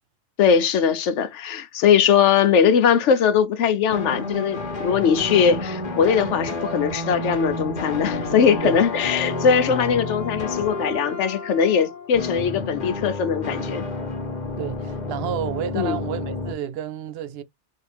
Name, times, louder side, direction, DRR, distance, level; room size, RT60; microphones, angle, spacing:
voice 1, 0.4-13.9 15.7-16.0, left 7 dB, 80° left, 1.0 m, -20 dB
sound 1, 3.9-11.8 12.1-16.5, left 2 dB, 40° left, 1.1 m, -30 dB
Wind instrument woodwind instrument, 8.0-12.1, left 7 dB, 10° right, 1.2 m, -36 dB
voice 2, 14.6-17.4, right 10 dB, 65° right, 0.7 m, -30 dB
4.1 x 2.8 x 3.2 m
omnidirectional pair, 1.2 m